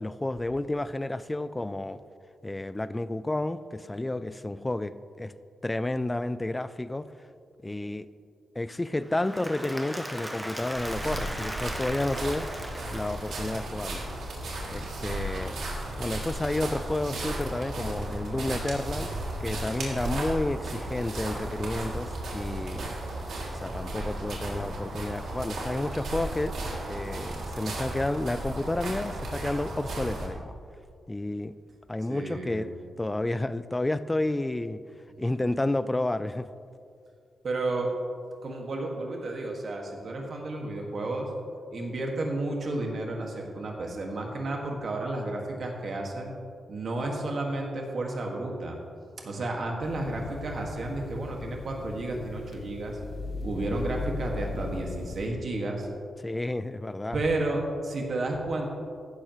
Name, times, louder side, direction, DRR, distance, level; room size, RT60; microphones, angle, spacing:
voice 1, 0.0-2.0 2.4-5.3 5.6-7.1 7.6-8.1 8.6-12.5 12.9-14.0 14.7-15.6 16.0-19.1 19.4-23.0 23.5-26.6 26.9-30.5 31.1-31.5 31.9-32.7 33.0-34.8 35.2-36.5 56.2-57.2, left 2 dB, 15° left, 14 dB, 0.3 m, -31 dB
Applause / Crowd, 9.0-14.0, equal, 5° right, 1.0 m, -38 dB
sound 1, 10.7-30.3, right 1 dB, 80° right, 2.6 m, -35 dB
voice 2, 32.1-32.7 35.2-35.4 37.4-37.9 38.4-41.3 41.7-46.3 46.7-48.8 49.2-53.0 53.4-55.9 57.1-58.7, right 2 dB, 50° right, 0 dB, 1.8 m, -32 dB
sound 2, 49.8-55.3, left 2 dB, 75° left, 1.7 m, -37 dB
15.0 x 12.0 x 3.1 m, 2.4 s
wide cardioid pair, 160°, 0 cm